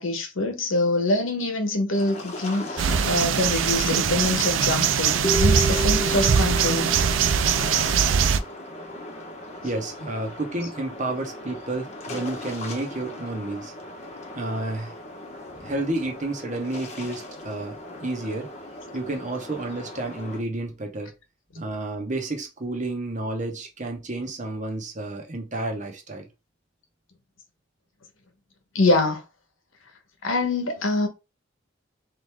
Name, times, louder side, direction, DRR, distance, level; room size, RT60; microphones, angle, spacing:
voice 1, 0.0-6.9 28.7-29.2 30.2-31.1, left 2 dB, 80° left, 1.1 m, -25 dB
sound 1, 1.9-20.4, left 1 dB, 35° left, 1.0 m, -39 dB
sound 2, 2.8-8.4, right 7 dB, 75° right, 0.5 m, -22 dB
sound 3, 5.2-9.0, right 1 dB, 10° left, 0.3 m, -32 dB
voice 2, 9.6-13.7 14.3-14.9 15.6-18.5 18.9-21.1 21.5-26.2, right 2 dB, 40° right, 1.1 m, -31 dB
3.9 x 3.3 x 3.5 m
head